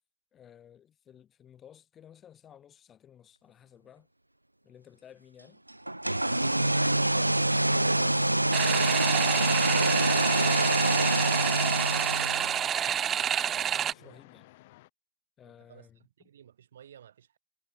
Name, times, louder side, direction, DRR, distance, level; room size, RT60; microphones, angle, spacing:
voice 1, 0.3-4.1 4.6-5.6 7.0-13.0 13.6-14.5 15.4-16.3, left 9 dB, 25° left, 5.6 m, -55 dB
sound 1, 5.9-12.6, right 1 dB, 85° right, 0.6 m, -26 dB
sound 2, 8.5-13.9, right 9 dB, 25° right, 1.0 m, -29 dB
sound 3, 9.2-14.9, left 19 dB, 50° left, 4.5 m, -52 dB
voice 2, 14.0-14.4 15.4-17.4, right 9 dB, 65° right, 6.5 m, -55 dB
figure-of-eight pair, 90°, 0 cm